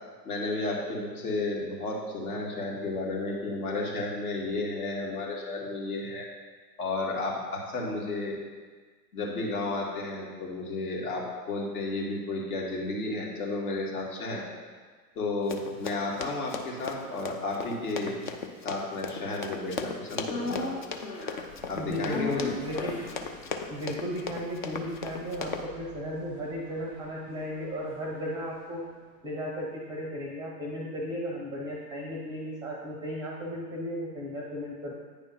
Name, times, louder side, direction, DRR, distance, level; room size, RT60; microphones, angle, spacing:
voice 1, 0.2-6.2 6.8-8.3 9.1-14.4 15.2-18.2 18.6-20.7 21.7-22.5, left 2 dB, 60° left, -3 dB, 2.1 m, -32 dB
Run, 15.5-25.6, left 5 dB, 35° left, 0.4 m, -37 dB
sound 1, 20.3-28.6 28.9-29.0, left 2 dB, 85° left, 2.2 m, -40 dB
voice 2, 21.7-23.0 23.7-28.8 29.2-34.9, equal, 10° right, -2 dB, 0.6 m, -35 dB
9.2 x 3.5 x 5.4 m, 1.5 s
hypercardioid pair, 120°, 49 cm